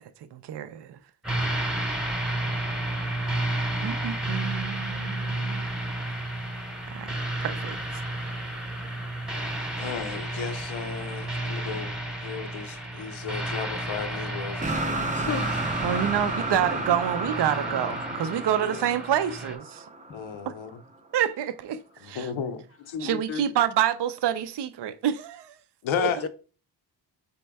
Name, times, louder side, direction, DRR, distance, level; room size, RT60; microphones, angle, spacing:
voice 1, 0.3-1.0 3.8-5.7 6.9-8.0 15.8-19.8 20.5-20.6 21.1-22.3 23.0-25.5 26.0-26.1, right 10 dB, 65° right, 0.5 m, -28 dB
sound 1, 1.2-19.6, right 1 dB, ahead, 1.0 m, -32 dB
voice 2, 9.8-15.3 20.1-20.8 22.0-23.4 25.8-26.2, left 7 dB, 85° left, 0.7 m, -34 dB
sound 2, 14.6-20.6, right 2 dB, 15° right, 0.5 m, -32 dB
voice 3, 15.1-15.6 16.6-17.0 17.4-18.3 18.6-18.9 20.1-20.2 26.2-26.3, left 6 dB, 35° left, 0.5 m, -37 dB
4.2 x 3.7 x 3.4 m
cardioid pair, 80°, 46 cm